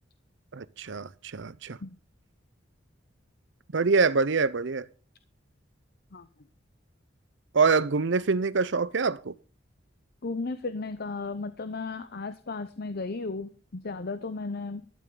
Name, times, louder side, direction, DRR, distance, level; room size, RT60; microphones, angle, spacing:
voice 1, 0.5-1.8 3.7-4.9 7.5-9.3, right 4 dB, 70° right, 0.7 m, -25 dB
voice 2, 10.2-14.8, left 3 dB, 55° left, 0.8 m, -34 dB
12.5 x 11.0 x 3.9 m
head